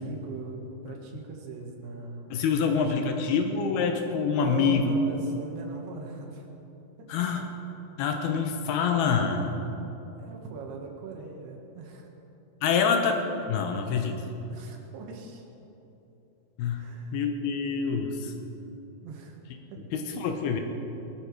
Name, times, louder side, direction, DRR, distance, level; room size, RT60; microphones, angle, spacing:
voice 1, 0.0-3.4 4.4-6.5 10.2-12.1 14.5-15.4 16.8-17.2 19.0-19.4 19.7-19.8, right 4 dB, 90° right, 0 dB, 3.5 m, -40 dB
voice 2, 2.3-4.9 7.1-7.5 8.0-9.6 12.6-13.2 13.5-14.2 16.6-16.8 17.1-18.3 19.9-20.6, left 6 dB, 85° left, 5 dB, 3.0 m, -26 dB
20.0 x 12.0 x 4.8 m, 3.0 s
omnidirectional pair, 4.5 m